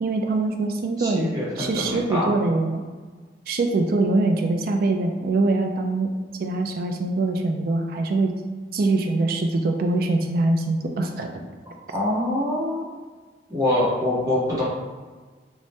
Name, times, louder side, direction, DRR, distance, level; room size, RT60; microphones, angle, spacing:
voice 1, 0.0-1.3 1.6-2.8 3.5-6.1 6.4-8.3 8.7-11.4, right 2 dB, 50° right, 4 dB, 0.3 m, -23 dB
voice 2, 1.0-2.3 11.9-12.9 13.5-14.6, left 1 dB, 20° right, -8 dB, 0.8 m, -24 dB
2.7 x 2.1 x 3.2 m, 1.4 s
head